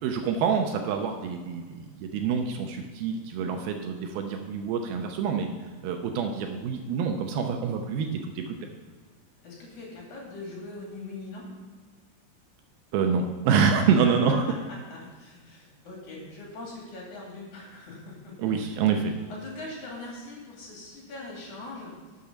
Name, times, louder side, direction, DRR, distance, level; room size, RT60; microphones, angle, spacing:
voice 1, 0.0-5.5 5.8-8.7 12.9-14.5 18.4-19.1, right 6 dB, 75° right, 4 dB, 2.5 m, -26 dB
voice 2, 9.4-11.5 13.8-14.2 14.9-18.7 19.3-21.9, left 2 dB, 50° left, -3 dB, 3.6 m, -42 dB
12.0 x 7.1 x 5.1 m, 1.5 s
omnidirectional pair, 4.7 m